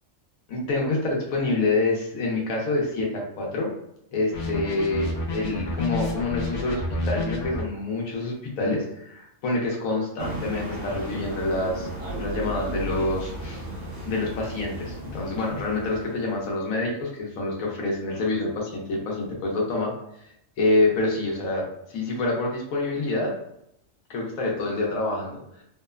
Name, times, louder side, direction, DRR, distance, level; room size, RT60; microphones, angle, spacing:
voice 1, 0.5-3.7 4.1-11.9 12.2-13.6 14.0-19.9 20.6-21.6 21.9-23.3 24.1-25.4, left 2 dB, 85° left, -1 dB, 1.1 m, -27 dB
sound 1, 4.3-7.6, left 2 dB, 65° left, 0.7 m, -29 dB
sound 2, 10.2-16.5, right 1 dB, 50° right, 0.9 m, -35 dB
2.9 x 2.0 x 2.3 m, 0.77 s
omnidirectional pair, 1.4 m